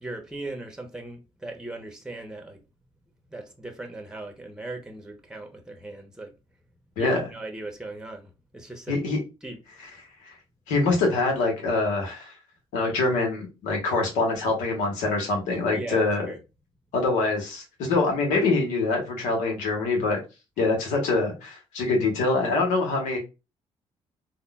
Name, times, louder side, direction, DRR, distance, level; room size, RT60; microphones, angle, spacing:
voice 1, 0.0-2.6 3.3-6.3 7.0-9.0 9.4-9.6 15.7-16.4, right 2 dB, 5° right, 0.8 m, -38 dB
voice 2, 8.9-9.2 10.2-10.3 10.7-12.3 12.7-16.3 16.9-20.2 20.6-23.2, left 3 dB, 85° left, 1.0 m, -24 dB
3.6 x 2.2 x 2.2 m
supercardioid pair, 60°, 12 cm